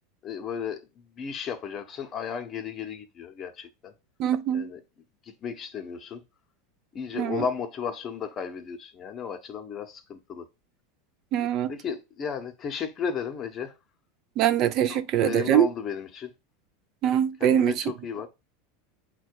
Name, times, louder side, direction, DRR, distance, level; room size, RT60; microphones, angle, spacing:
voice 1, 0.2-3.9 4.5-4.8 5.2-6.2 6.9-10.5 11.7-13.7 14.9-16.3 17.4-18.3, left 7 dB, 35° left, 0.8 m, -34 dB
voice 2, 4.2-4.7 7.1-7.4 11.3-11.7 14.4-15.7 17.0-17.8, right 10 dB, 50° right, 0.4 m, -23 dB
4.1 x 2.3 x 4.4 m
hypercardioid pair, 105°, 0 cm